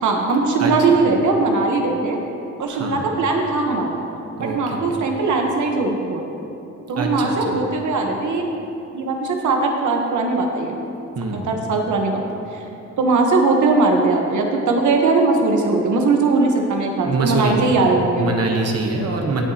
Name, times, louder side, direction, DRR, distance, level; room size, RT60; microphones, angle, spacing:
voice 1, 0.0-2.2 2.6-4.0 4.4-6.2 6.9-8.5 8.9-10.7 11.3-12.2 12.5-12.6 13.0-18.3, right 3 dB, 85° right, 2 dB, 1.0 m, -19 dB
voice 2, 2.7-3.1 4.4-4.8 7.0-7.6 11.2-11.6 17.1-17.7 18.2-19.4, right 3 dB, 60° right, 1 dB, 1.0 m, -24 dB
17.5 x 6.9 x 2.8 m, 2.9 s
wide cardioid pair, 170°, 29 cm